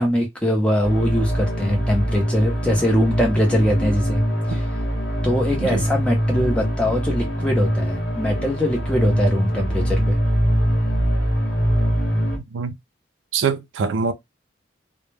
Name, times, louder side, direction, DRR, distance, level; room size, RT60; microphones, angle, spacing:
voice 1, 0.0-4.2 4.5-4.7 5.2-10.2, equal, 5° left, 0.6 m, -22 dB
sound 1, 0.8-12.4, equal, 75° left, 0.9 m, -22 dB
voice 2, 13.3-14.1, right 5 dB, 80° right, 0.4 m, -23 dB
2.2 x 2.1 x 3.1 m
head